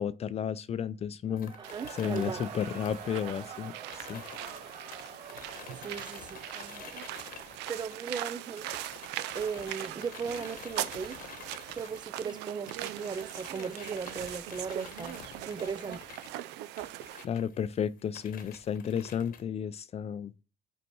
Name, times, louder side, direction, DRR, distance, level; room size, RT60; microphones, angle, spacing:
voice 1, 0.0-1.5 2.0-4.2 17.2-20.3, left 8 dB, 40° left, 0.4 m, -33 dB
Cheering / Crowd, 1.3-8.0, right 6 dB, 40° right, 1.2 m, -47 dB
sound 1, 1.4-8.3 8.6-19.4, left 7 dB, 55° left, 1.1 m, -49 dB
voice 2, 1.6-2.5 5.8-7.0 7.7-8.7 9.3-11.2 11.8-16.0, right 6 dB, 25° right, 0.4 m, -37 dB
sound 2, 1.6-17.2, right 14 dB, 90° right, 0.5 m, -41 dB
5.4 x 4.2 x 4.5 m
cardioid pair, 110°, 17 cm